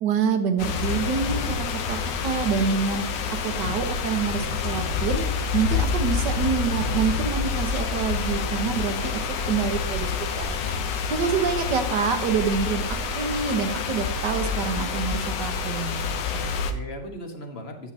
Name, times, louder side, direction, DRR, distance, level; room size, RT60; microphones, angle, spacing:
voice 1, 0.0-3.0 3.4-10.1 10.4-10.6 10.9-12.8 13.1-16.2, right 6 dB, 85° right, 6 dB, 1.6 m, -27 dB
sound 1, 0.6-16.7, left 5 dB, 85° left, 1.4 m, -27 dB
voice 2, 11.3-11.8 16.3-17.9, equal, 40° left, 3 dB, 1.4 m, -39 dB
10.0 x 8.6 x 2.8 m, 0.86 s
omnidirectional pair, 1.8 m